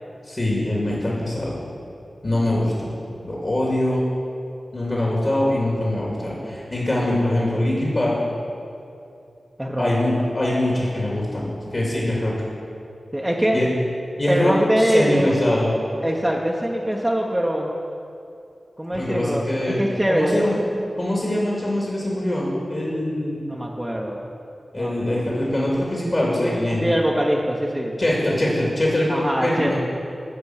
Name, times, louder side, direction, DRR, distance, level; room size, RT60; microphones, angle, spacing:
voice 1, 0.3-1.6 2.2-2.9 3.2-4.0 4.7-8.2 9.7-12.3 13.5-13.7 14.2-15.7 18.9-19.8 20.1-20.6 21.0-23.5 24.7-26.8 28.0-29.8, left 1 dB, 45° left, -5 dB, 2.6 m, -23 dB
voice 2, 9.6-9.9 13.1-13.6 14.3-15.3 16.0-17.7 18.8-20.5 23.5-24.2 24.8-25.1 26.8-28.0 29.1-29.8, equal, 15° right, -2 dB, 1.0 m, -23 dB
11.5 x 5.2 x 8.1 m, 2.6 s
cardioid pair, 40°, 0 cm